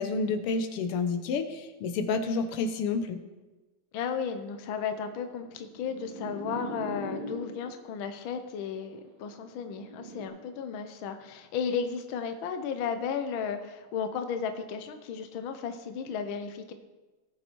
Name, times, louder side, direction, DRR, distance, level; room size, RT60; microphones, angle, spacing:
voice 1, 0.0-3.2, left 4 dB, 85° left, 8 dB, 1.8 m, -29 dB
voice 2, 3.9-16.7, left 6 dB, 70° left, 8 dB, 1.6 m, -34 dB
sound 1, 4.7-7.8 8.7-10.3, right 1 dB, 60° right, 2.8 m, -41 dB
18.0 x 7.0 x 4.5 m, 1.2 s
omnidirectional pair, 2.4 m